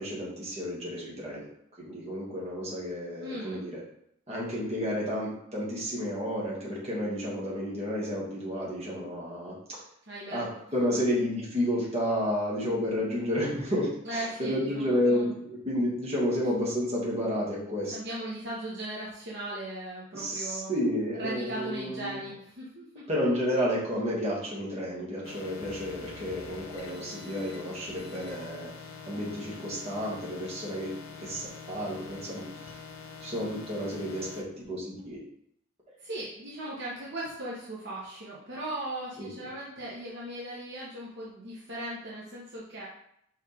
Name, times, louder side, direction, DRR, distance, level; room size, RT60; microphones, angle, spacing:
voice 1, 0.0-1.4 1.8-3.8 4.3-9.8 10.3-18.0 20.1-22.2 23.1-28.7 29.1-30.9 31.2-32.7 33.2-35.2 39.2-39.3, equal, 30° right, -6 dB, 2.2 m, -31 dB
voice 2, 3.2-3.6 10.1-10.4 10.9-11.0 14.0-15.3 17.9-20.7 21.2-23.1 36.0-42.9, right 1 dB, 55° right, -6 dB, 1.2 m, -38 dB
sound 1, 25.2-34.4, left 5 dB, 90° left, 0.9 m, -45 dB
5.4 x 4.9 x 3.6 m, 0.72 s
head